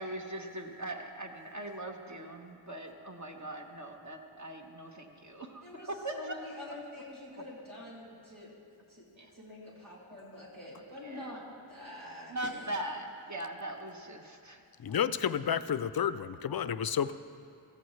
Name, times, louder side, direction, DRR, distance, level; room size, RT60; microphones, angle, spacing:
voice 1, 0.0-6.4 6.6-6.7 9.2-9.3 10.8-11.3 12.3-15.0, right 1 dB, 35° right, 1 dB, 1.2 m, -41 dB
voice 2, 5.6-8.5 8.9-9.1 9.3-11.4 11.7-12.6, left 2 dB, 80° right, -6 dB, 2.9 m, -46 dB
voice 3, 14.8-17.1, left 8 dB, 50° left, 13 dB, 0.5 m, -31 dB
16.0 x 14.5 x 3.2 m, 2.5 s
wide cardioid pair, 55°, 48 cm